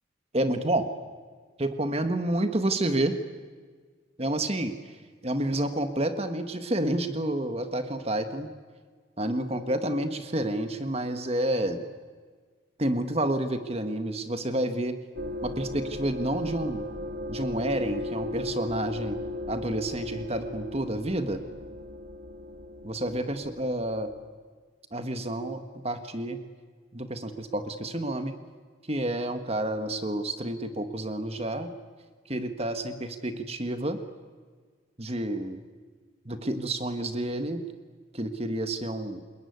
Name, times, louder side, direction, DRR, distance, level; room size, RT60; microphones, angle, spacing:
voice 1, 0.3-0.9 1.6-3.1 4.2-4.7 5.2-8.5 9.2-11.9 12.8-14.9 15.4-16.9 17.3-19.2 19.5-21.4 22.8-24.1 24.9-26.4 26.9-28.3 28.9-31.7 32.3-34.0 35.0-35.6 36.2-37.6 38.1-39.2, right 1 dB, 30° right, 8 dB, 1.6 m, -29 dB
sound 1, 15.2-24.3, left 1 dB, 65° right, 2.0 m, -37 dB
28.0 x 21.5 x 9.6 m, 1.5 s
head